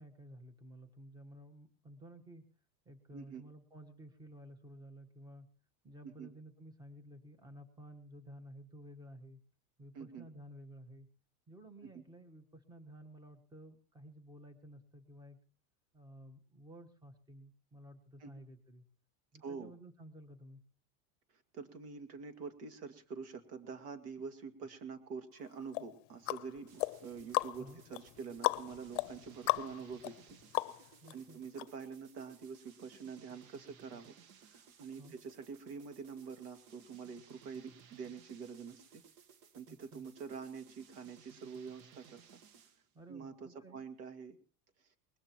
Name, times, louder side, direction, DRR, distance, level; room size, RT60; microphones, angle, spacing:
voice 1, 0.0-2.4 2.8-5.5 5.8-9.4 9.8-11.1 11.5-15.4 15.9-18.8 19.3-20.6 27.6-27.8 31.0-31.4 35.0-35.1 39.7-40.0 42.9-43.8, right 1 dB, 10° right, 7 dB, 1.3 m, -54 dB
voice 2, 3.1-3.4 6.0-6.3 9.9-10.3 18.2-18.3 19.4-19.7 21.5-39.0 39.5-42.4 43.1-44.4, right 5 dB, 90° right, 8 dB, 2.4 m, -46 dB
sound 1, 25.7-31.1 31.6-31.7, left 22 dB, 55° left, 0.7 m, -37 dB
sound 2, 26.7-42.9, right 7 dB, 65° right, 1.5 m, -61 dB
20.5 x 20.0 x 3.0 m, 0.41 s
supercardioid pair, 145°, 45 cm